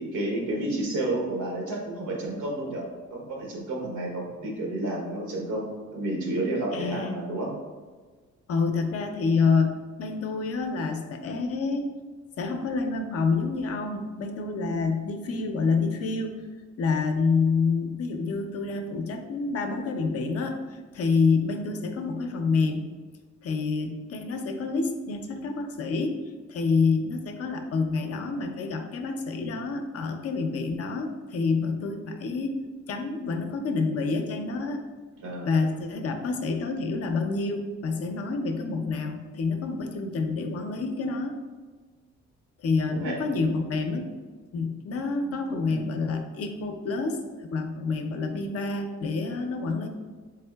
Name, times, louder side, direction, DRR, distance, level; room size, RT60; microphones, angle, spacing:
voice 1, 0.0-7.5 14.6-15.0 35.2-35.7 42.9-43.2 43.4-43.6 45.3-45.8, right 1 dB, 80° right, -1 dB, 1.1 m, -31 dB
voice 2, 6.7-7.2 8.5-11.9 12.4-16.4 16.8-22.9 23.4-26.2 26.5-32.5 32.9-34.8 35.4-41.4 42.6-44.1 44.5-49.9, left 4 dB, 50° left, 5 dB, 0.5 m, -28 dB
3.6 x 3.5 x 2.2 m, 1.4 s
cardioid pair, 90°, 30 cm